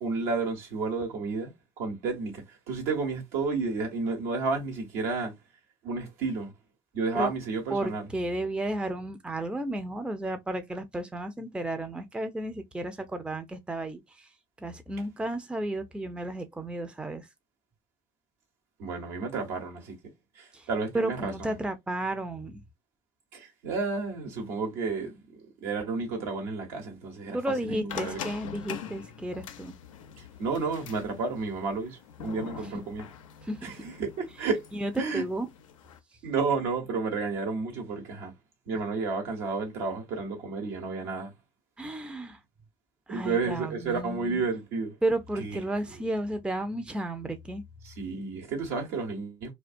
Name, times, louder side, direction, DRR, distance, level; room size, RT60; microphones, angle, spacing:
voice 1, 0.0-5.3 5.8-6.5 6.9-8.1 18.8-20.0 20.3-21.6 23.3-25.2 25.6-27.4 27.7-28.2 30.2-33.1 33.6-34.6 35.0-35.2 36.2-38.3 38.7-41.3 43.1-45.0 45.4-45.6 47.8-49.5, right 4 dB, 70° right, 1.1 m, -31 dB
voice 2, 7.7-14.3 14.6-17.3 20.5-20.7 20.9-22.6 27.3-29.7 33.4-33.8 34.7-35.5 41.8-42.4 43.1-44.4 45.0-47.6, right 1 dB, 5° right, 0.5 m, -33 dB
sound 1, 27.9-36.0, left 8 dB, 85° left, 0.4 m, -43 dB
2.3 x 2.2 x 2.5 m
hypercardioid pair, 60°, 16 cm